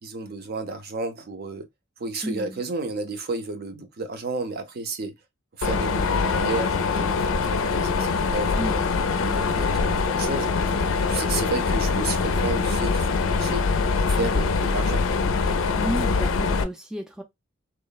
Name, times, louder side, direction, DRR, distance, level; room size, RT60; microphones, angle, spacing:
voice 1, 0.0-1.7 2.0-5.2 5.6-8.8 9.6-10.8 11.1-13.7 14.1-15.0, right 3 dB, 50° right, 0.6 m, -32 dB
voice 2, 2.2-2.6 8.6-10.0 15.5-17.2, right 1 dB, 5° right, 0.3 m, -33 dB
Mechanisms, 5.6-16.6, left 4 dB, 80° left, 0.4 m, -23 dB
3.0 x 2.0 x 2.2 m
head